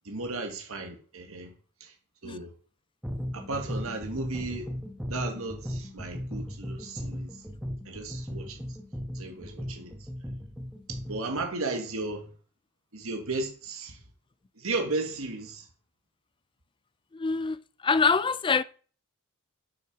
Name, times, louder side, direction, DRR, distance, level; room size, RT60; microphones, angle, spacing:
voice 1, 0.0-1.5 1.8-1.9 2.2-2.5 3.3-4.7 5.1-7.3 7.8-8.6 9.1-9.9 10.9-12.3 12.9-14.0 14.6-15.6, right 3 dB, 70° right, 1.7 m, -35 dB
sound 1, 3.0-11.5, equal, 5° right, 1.2 m, -37 dB
voice 2, 17.1-17.6 17.8-18.6, left 5 dB, 25° left, 0.4 m, -24 dB
7.7 x 6.3 x 5.9 m
head